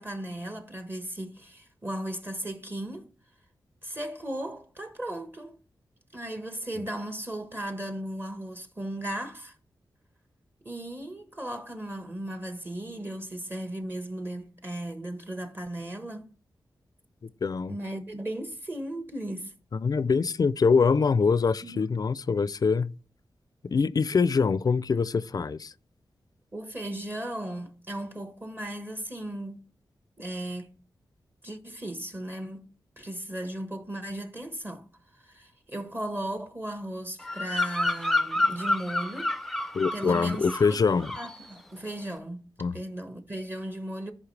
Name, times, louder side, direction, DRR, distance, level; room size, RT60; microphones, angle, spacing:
voice 1, 0.0-3.1 3.8-5.6 6.1-9.5 10.6-16.3 17.7-19.5 21.6-22.0 26.5-29.7 30.2-30.7 31.4-32.7 33.0-39.3 39.6-40.8 41.2-44.1, right 1 dB, 25° right, 1.4 m, -36 dB
voice 2, 17.4-17.7 19.7-22.9 23.6-25.7 39.7-41.1 42.6-42.8, left 5 dB, 50° left, 0.4 m, -24 dB
Bird vocalization bird call bird song, 37.2-40.7 41.0-41.4, left 2 dB, 5° left, 0.6 m, -29 dB
13.5 x 5.5 x 3.3 m
cardioid pair, 70°, 8 cm